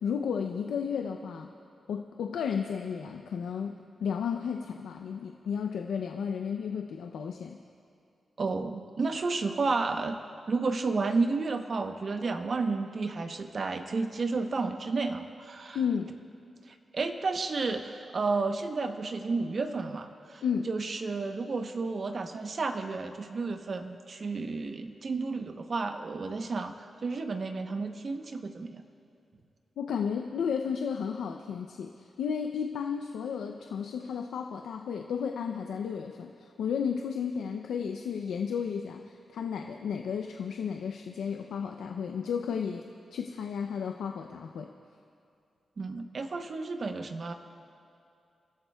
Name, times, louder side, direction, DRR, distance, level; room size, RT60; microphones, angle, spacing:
voice 1, 0.0-1.5 1.9-7.6 15.7-16.2 20.4-20.7 29.8-42.9 43.1-44.7, left 7 dB, 90° left, 4 dB, 0.5 m, -33 dB
voice 2, 8.4-10.2 10.5-15.8 16.7-26.7 27.0-28.8 45.8-47.3, right 3 dB, 55° right, 6 dB, 0.9 m, -31 dB
29.5 x 13.0 x 2.3 m, 2.5 s
cardioid pair, 60°, 0 cm